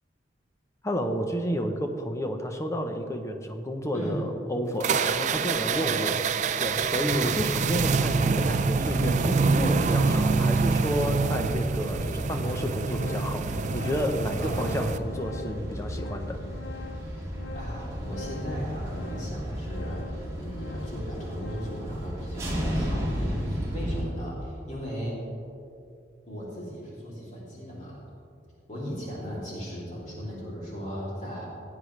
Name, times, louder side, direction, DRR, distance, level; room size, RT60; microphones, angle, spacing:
voice 1, 0.8-6.2 6.6-16.4, equal, 15° left, 4 dB, 0.7 m, -31 dB
sound 1, 4.8-15.0, right 4 dB, 40° right, 0.3 m, -26 dB
sound 2, 8.0-24.0, equal, 15° right, 1.9 m, -34 dB
Organ, 10.7-10.8 11.6-11.7 12.0-21.9, left 4 dB, 80° left, 0.6 m, -45 dB
voice 2, 14.4-14.8 17.0-17.3 17.5-25.2 26.3-28.0 28.7-31.5, equal, 40° left, -6 dB, 2.9 m, -37 dB
16.5 x 8.7 x 3.2 m, 2.5 s
head